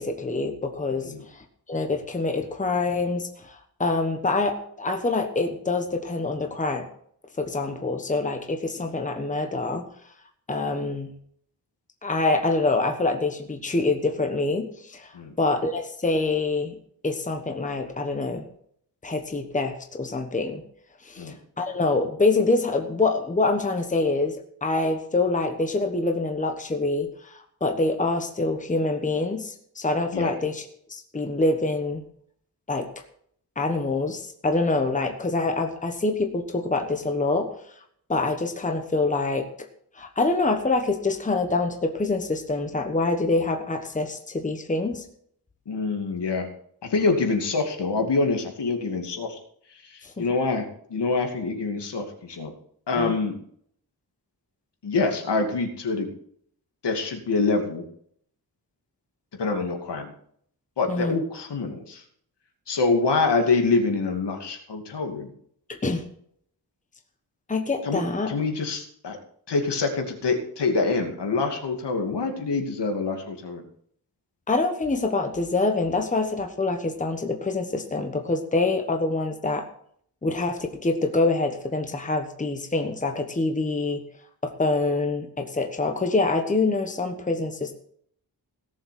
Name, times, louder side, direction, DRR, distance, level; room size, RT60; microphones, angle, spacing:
voice 1, 0.0-6.9 7.4-9.9 10.5-11.1 12.0-16.8 17.0-18.4 19.0-20.6 21.0-24.3 24.6-32.0 32.7-32.9 33.6-37.5 38.1-39.5 39.9-45.0 50.0-50.3 53.0-53.1 60.9-61.2 65.7-66.0 67.5-68.3 74.5-79.6 80.2-84.0 84.4-87.7, left 3 dB, 20° left, 5 dB, 1.2 m, -25 dB
voice 2, 45.7-46.5 46.8-49.4 49.7-52.5 52.9-53.3 54.8-56.1 56.8-57.8 59.4-60.1 60.8-62.0 62.7-65.3 67.8-68.0 68.3-69.2 69.5-73.6, left 3 dB, 80° left, 3 dB, 2.6 m, -25 dB
17.5 x 7.2 x 6.0 m, 0.65 s
wide cardioid pair, 170°, 41 cm